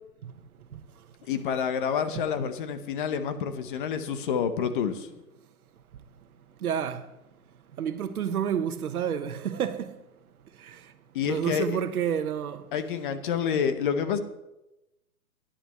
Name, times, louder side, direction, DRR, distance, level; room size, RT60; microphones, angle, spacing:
voice 1, 1.3-5.1 11.1-11.8 12.7-14.2, left 7 dB, 35° left, 0.9 m, -28 dB
voice 2, 6.6-7.1 7.8-9.9 10.7-10.8 11.2-12.6, right 8 dB, 70° right, 1.1 m, -29 dB
16.5 x 10.0 x 3.1 m
hypercardioid pair, 145°, 45 cm